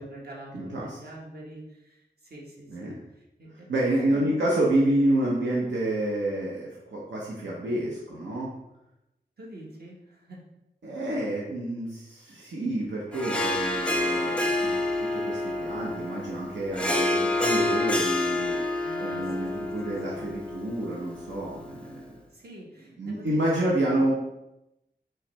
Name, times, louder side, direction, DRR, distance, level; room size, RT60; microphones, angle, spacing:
voice 1, 0.0-4.4 9.4-10.4 18.8-20.3 22.3-24.1, right 1 dB, 60° right, -3 dB, 1.3 m, -45 dB
voice 2, 0.5-1.0 2.7-3.0 3.7-8.5 10.8-22.2 23.0-24.1, right 1 dB, 85° right, -5 dB, 0.8 m, -28 dB
Harp, 13.1-21.8, left 2 dB, 5° left, 0.6 m, -28 dB
4.8 x 3.1 x 3.2 m, 0.90 s
wide cardioid pair, 65°, 18 cm